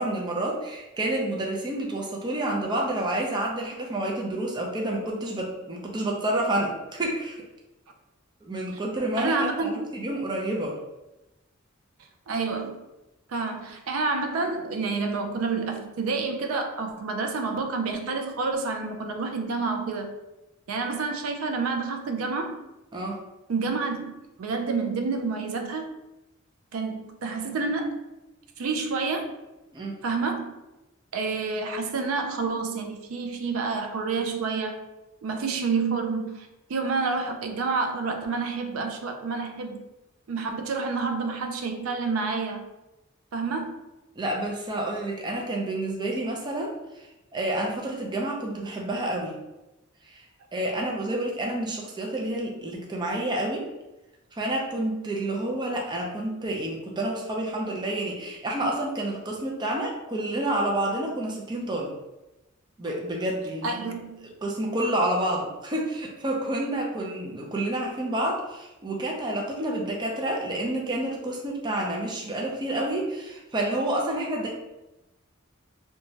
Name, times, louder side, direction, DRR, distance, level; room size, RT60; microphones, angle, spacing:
voice 1, 0.0-7.4 8.4-10.8 22.9-23.2 29.7-29.9 44.1-47.1 47.3-49.3 50.1-50.2 50.5-53.7 54.3-61.9 62.8-63.9 64.4-74.5, right 1 dB, 20° right, -1 dB, 0.4 m, -29 dB
voice 2, 9.2-9.9 12.3-12.8 13.3-20.1 20.7-22.6 23.5-24.1 24.4-25.9 26.7-28.0 28.6-29.3 30.0-30.5 31.1-34.8 35.2-39.8 40.3-42.6 43.3-43.7 63.6-64.2, right 4 dB, 80° right, 4 dB, 0.4 m, -29 dB
2.9 x 2.2 x 2.7 m, 0.99 s
head